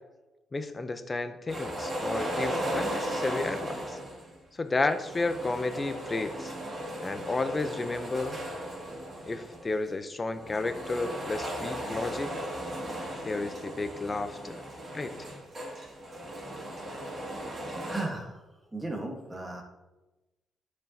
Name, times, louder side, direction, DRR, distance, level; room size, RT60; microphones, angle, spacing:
voice 1, 0.5-4.0 4.5-6.5 7.0-8.4 9.2-12.3 13.2-14.6 14.9-15.1, left 3 dB, 25° left, 10 dB, 0.6 m, -32 dB
sound 1, 1.5-4.3 4.9-9.7 10.3-18.0, right 1 dB, 35° right, 2.2 m, -36 dB
voice 2, 17.9-18.4 18.7-19.6, right 2 dB, 15° right, 1 dB, 1.3 m, -35 dB
10.5 x 4.9 x 2.8 m, 1.1 s
cardioid pair, 90°, 0 cm